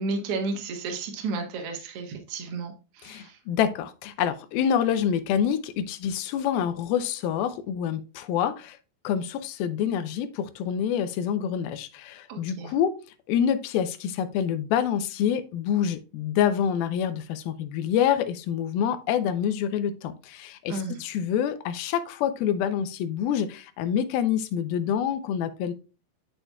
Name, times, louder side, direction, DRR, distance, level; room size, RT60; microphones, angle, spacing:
voice 1, 0.0-3.4 12.3-12.7 20.7-21.0, right 3 dB, 85° right, 1.2 m, -32 dB
voice 2, 3.0-8.8 9.0-13.0 13.3-25.7, left 9 dB, 80° left, 2.4 m, -27 dB
8.7 x 6.7 x 2.3 m
omnidirectional pair, 4.5 m